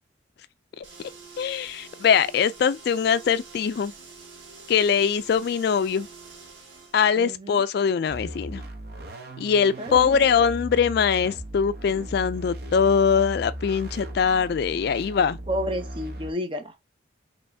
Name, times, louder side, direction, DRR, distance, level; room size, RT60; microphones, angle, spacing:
sound 1, 0.8-7.0, right 4 dB, 75° right, 1.9 m, -46 dB
voice 1, 1.4-3.9 4.7-6.1 6.9-8.6 9.4-15.4, left 6 dB, 55° left, 0.3 m, -22 dB
voice 2, 7.1-7.6 9.8-10.2 15.5-16.8, equal, 25° right, 0.6 m, -31 dB
sound 2, 8.1-16.3, equal, 55° right, 0.9 m, -37 dB
5.4 x 3.1 x 2.7 m
head